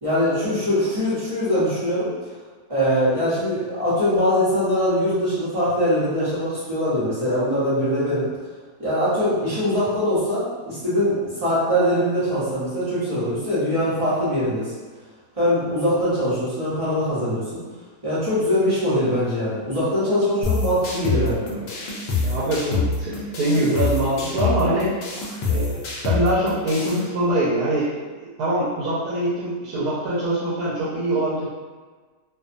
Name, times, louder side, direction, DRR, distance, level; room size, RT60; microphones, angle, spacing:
voice 1, 0.0-2.1 2.7-8.3 8.8-14.7 15.4-17.4 18.0-21.6, equal, 30° right, -11 dB, 0.8 m, -22 dB
sound 1, 20.4-27.0, left 3 dB, 65° left, 0.8 m, -26 dB
voice 2, 22.2-24.9 25.5-27.9 28.4-31.5, right 1 dB, 85° right, -9 dB, 1.2 m, -23 dB
2.6 x 2.2 x 2.5 m, 1.4 s
omnidirectional pair, 1.6 m